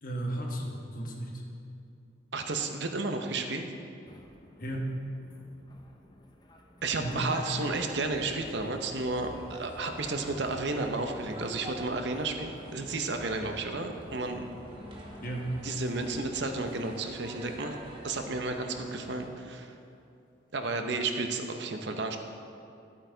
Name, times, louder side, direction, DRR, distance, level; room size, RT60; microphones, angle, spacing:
voice 1, 0.0-1.4 4.6-5.0 7.0-7.3 15.2-15.6, right 1 dB, 45° left, 0 dB, 1.2 m, -34 dB
voice 2, 2.3-3.6 6.8-14.4 15.6-17.7 18.0-19.7 20.5-22.2, right 3 dB, 65° right, 5 dB, 0.8 m, -32 dB
sound 1, 4.1-16.8, left 1 dB, 20° left, 0.6 m, -53 dB
sound 2, 7.0-19.3, right 1 dB, 25° right, 1.3 m, -46 dB
12.0 x 8.8 x 3.9 m, 2.6 s
head